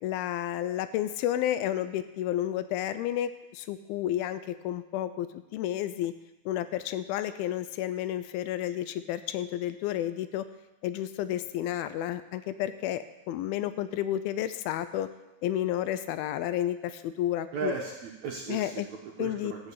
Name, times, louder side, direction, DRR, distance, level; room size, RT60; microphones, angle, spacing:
voice 1, 0.0-6.1 6.5-10.5 10.8-15.1 15.4-17.7 18.5-18.9 19.2-19.5, left 12 dB, 80° left, 12 dB, 2.4 m, -31 dB
voice 2, 17.5-19.7, right 5 dB, 70° right, 0 dB, 1.8 m, -36 dB
13.0 x 5.4 x 8.3 m, 1.0 s
omnidirectional pair, 4.4 m